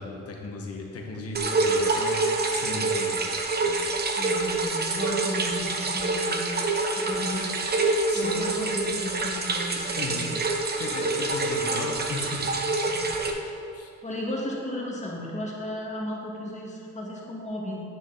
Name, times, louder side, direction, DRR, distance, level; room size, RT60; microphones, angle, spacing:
voice 1, 0.0-3.8 8.1-8.4 10.0-10.2 10.8-12.4 13.7-13.9, left 3 dB, 55° left, 0 dB, 1.5 m, -36 dB
sound 1, 1.3-13.3, right 3 dB, 35° right, 0.9 m, -26 dB
voice 2, 4.2-6.5 7.0-7.6 8.1-10.4 12.9-13.1 14.0-17.8, left 1 dB, 25° left, -3 dB, 1.9 m, -34 dB
9.5 x 6.3 x 4.0 m, 2.5 s
cardioid pair, 90°, 30 cm